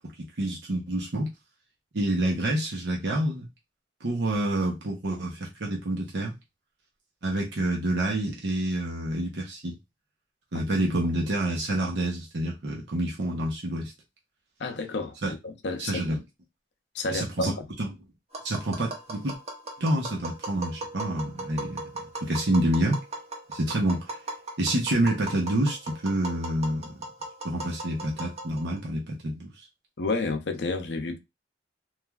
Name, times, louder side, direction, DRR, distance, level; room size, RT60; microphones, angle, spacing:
voice 1, 0.2-1.3 1.9-3.5 4.0-6.3 7.2-9.8 10.5-13.9 15.2-15.3 15.8-16.2 17.1-17.9 18.4-19.3 19.8-23.0 23.5-24.2 24.6-26.9 27.4-29.5, right 1 dB, 70° right, 0.8 m, -28 dB
voice 2, 14.6-15.2 15.4-16.0 16.9-17.7 30.0-31.2, left 3 dB, 70° left, 0.6 m, -30 dB
Tap, 18.3-28.8, right 2 dB, 35° right, 0.8 m, -38 dB
3.1 x 2.4 x 2.3 m
head